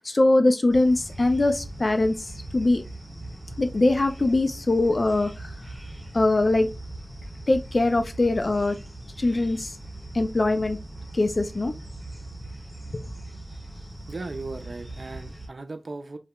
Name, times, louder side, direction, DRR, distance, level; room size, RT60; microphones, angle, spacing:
voice 1, 0.0-2.1 2.5-2.8 3.6-5.5 6.1-6.7 7.5-8.8 9.2-9.7 10.1-10.8 11.1-11.7, left 2 dB, 55° left, 0.5 m, -22 dB
sound 1, 0.7-15.5, right 1 dB, 20° right, 1.6 m, -40 dB
voice 2, 14.1-16.2, right 3 dB, 80° right, 0.5 m, -37 dB
3.1 x 2.9 x 2.2 m
wide cardioid pair, 60°, 0 cm